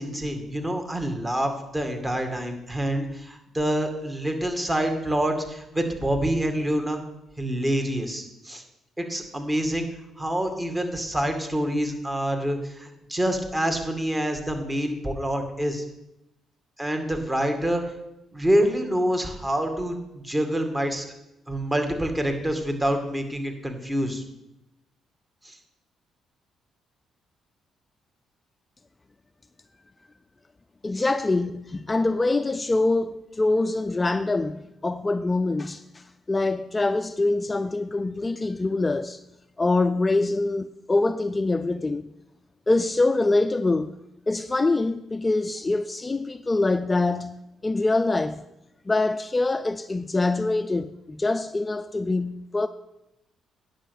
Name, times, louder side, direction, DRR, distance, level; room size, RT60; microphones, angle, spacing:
voice 1, 0.0-7.0 7.4-8.6 9.0-9.9 10.2-15.8 16.8-17.9 18.3-21.0 21.5-24.2 25.4-25.6 30.9-31.1, equal, 20° right, 2.2 m, -26 dB
voice 2, 30.8-39.2 39.6-42.1 42.7-44.0 44.3-48.4 48.9-52.7, left 2 dB, 25° left, 0.4 m, -24 dB
9.9 x 6.5 x 6.5 m
supercardioid pair, 60°, 0 cm